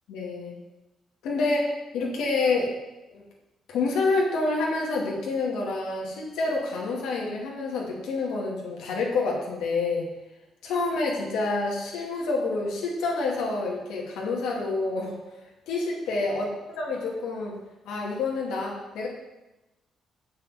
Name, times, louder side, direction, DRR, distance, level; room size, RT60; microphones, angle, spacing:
voice 1, 0.1-0.5 1.2-2.7 3.1-3.2 3.7-10.1 10.6-15.2 15.7-16.5 16.8-17.5 17.8-19.1, left 3 dB, 85° left, -2 dB, 2.5 m, -28 dB
6.9 x 6.5 x 7.8 m, 1.0 s
cardioid pair, 90°, 0 cm